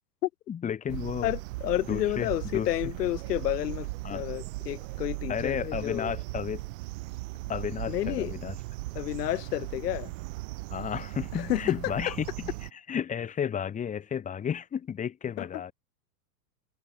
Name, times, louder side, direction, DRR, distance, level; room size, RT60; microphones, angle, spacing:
voice 1, 0.5-1.3 1.9-2.7 4.0-4.2 5.3-6.7 7.5-8.5 10.7-12.5 12.9-15.7, left 8 dB, 15° left, 2.2 m, -33 dB
sound 1, 0.9-12.7, right 21 dB, 55° right, 6.9 m, -38 dB
voice 2, 1.2-6.1 7.9-8.3 8.9-10.1 11.3-12.2 15.4-15.5, left 15 dB, 70° left, 2.3 m, -30 dB
supercardioid pair, 155°, 49 cm